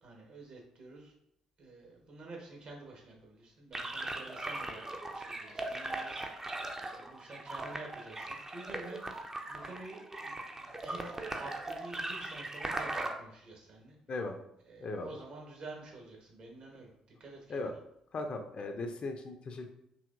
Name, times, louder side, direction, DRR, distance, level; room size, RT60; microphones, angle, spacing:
voice 1, 0.0-1.1 1.6-6.3 6.9-14.0 14.6-16.9 17.2-17.7, right 2 dB, 50° right, 0 dB, 1.2 m, -49 dB
sound 1, 3.7-13.1, right 2 dB, 20° right, 0.6 m, -39 dB
voice 2, 14.1-14.4 14.8-15.1 17.5-17.7 18.1-19.7, left 2 dB, 45° left, 5 dB, 0.5 m, -37 dB
4.7 x 2.9 x 2.5 m, 0.77 s
figure-of-eight pair, 45°, 2 cm